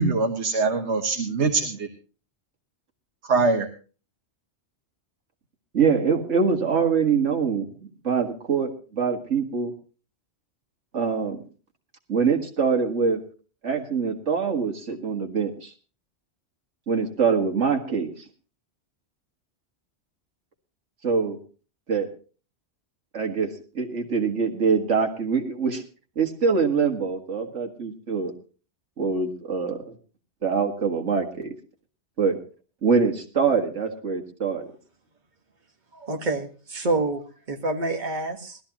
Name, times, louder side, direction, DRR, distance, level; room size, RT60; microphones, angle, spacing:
voice 1, 0.0-1.9 3.2-3.7, right 3 dB, 70° right, 5 dB, 1.5 m, -23 dB
voice 2, 5.7-9.7 10.9-11.4 12.1-13.2 13.6-15.7 16.9-18.1 21.0-21.4 21.9-22.1 23.1-23.5 23.8-25.8 26.2-28.3 29.0-30.0 30.4-31.5 32.2-32.4 32.8-34.7, right 5 dB, 85° right, 3 dB, 2.1 m, -24 dB
voice 3, 35.9-38.6, right 2 dB, 40° right, 2 dB, 1.7 m, -28 dB
19.5 x 13.0 x 3.0 m, 0.37 s
omnidirectional pair, 1.2 m